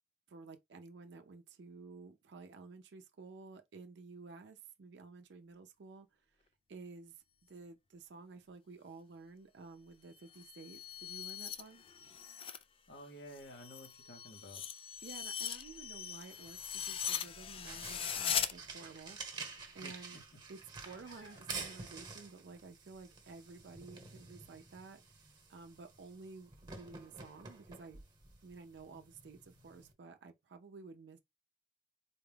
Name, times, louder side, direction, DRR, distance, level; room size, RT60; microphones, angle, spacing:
voice 1, 0.3-6.2 6.7-11.8 15.0-20.2 20.5-20.6 20.9-25.0 25.5-28.0 28.4-31.2, right 4 dB, 85° right, 0.5 m, -53 dB
sound 1, 10.2-12.6 13.0-18.5, left 8 dB, 30° left, 0.3 m, -40 dB
voice 2, 12.9-14.7 19.8-20.2, equal, 65° left, 1.0 m, -52 dB
sound 2, 16.3-29.9, right 4 dB, 25° right, 1.1 m, -50 dB
sound 3, 20.8-26.1, left 3 dB, 85° left, 1.8 m, -64 dB
4.1 x 2.3 x 3.3 m
head